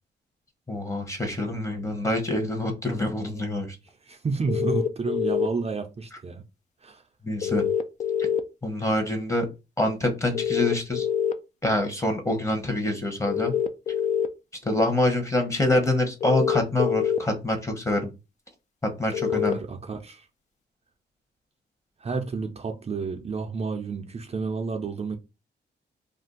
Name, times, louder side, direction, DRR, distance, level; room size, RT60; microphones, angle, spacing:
voice 1, 0.7-3.8 7.2-7.6 8.6-9.5 9.8-11.1 11.6-13.5 14.6-18.1 18.8-19.6, left 1 dB, 15° left, 0.9 m, -26 dB
voice 2, 4.0-6.4 6.8-7.0 19.4-20.3 22.0-25.2, right 4 dB, 35° right, 0.5 m, -30 dB
sound 1, 4.5-5.5 7.4-8.4 10.3-11.3 13.3-14.3 16.2-17.2 19.1-19.5, left 8 dB, 40° left, 0.4 m, -25 dB
2.5 x 2.4 x 3.7 m
cardioid pair, 100°, 19 cm